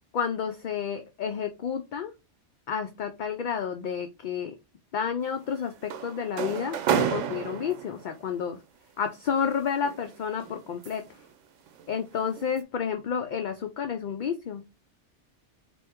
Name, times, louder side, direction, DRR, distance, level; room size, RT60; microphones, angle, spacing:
voice 1, 0.1-2.1 2.7-4.5 4.9-8.6 9.0-11.0 11.9-14.6, left 7 dB, 60° left, 7 dB, 0.5 m, -30 dB
sound 1, 5.2-8.2 9.3-11.2 11.7-11.9 12.4-12.6, right 8 dB, 90° right, 1.0 m, -31 dB
4.2 x 3.1 x 3.5 m, 0.27 s
omnidirectional pair, 1.2 m